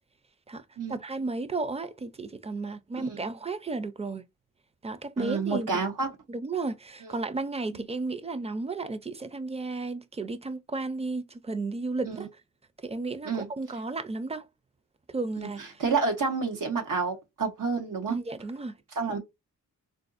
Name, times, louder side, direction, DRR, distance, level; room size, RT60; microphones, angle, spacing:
voice 1, 0.9-4.2 4.8-5.8 6.3-12.3 12.8-14.4 15.1-15.8 18.1-18.8, right 3 dB, 20° right, 0.4 m, -33 dB
voice 2, 5.2-6.1 7.7-7.8 12.0-12.3 13.2-13.5 15.4-18.2 19.0-19.2, right 4 dB, 90° right, 0.9 m, -29 dB
3.7 x 2.6 x 2.5 m
wide cardioid pair, 70°, 32 cm